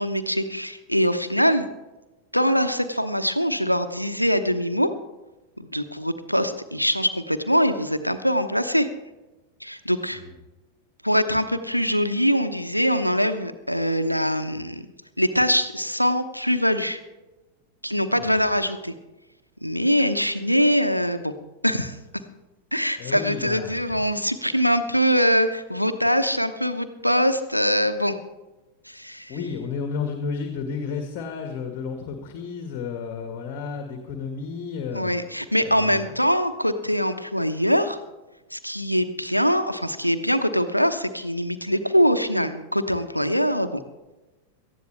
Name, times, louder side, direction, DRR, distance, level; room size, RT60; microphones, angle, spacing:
voice 1, 0.0-1.7 2.3-4.9 5.6-8.9 9.6-10.2 11.0-14.8 15.2-17.0 17.8-18.9 19.6-21.3 21.6-22.0 22.7-28.2 28.9-29.4 34.9-38.0 38.5-43.8, equal, 90° left, 9 dB, 1.0 m, -23 dB
voice 2, 23.0-24.0 29.3-35.1 35.6-36.1, left 5 dB, 40° left, 5 dB, 1.8 m, -32 dB
18.5 x 13.5 x 3.4 m, 1.1 s
figure-of-eight pair, 90°, 0 cm